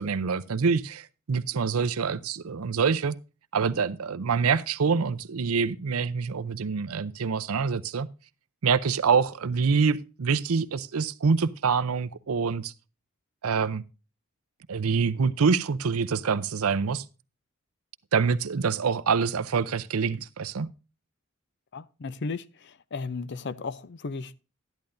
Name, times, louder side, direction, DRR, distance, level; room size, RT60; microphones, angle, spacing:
voice 1, 0.0-3.2 3.5-8.1 8.6-12.7 13.4-13.8 14.7-17.0 18.1-20.7, right 5 dB, 85° right, 0.6 m, -26 dB
voice 2, 21.7-24.4, left 4 dB, 55° left, 0.6 m, -35 dB
13.0 x 10.5 x 2.6 m
head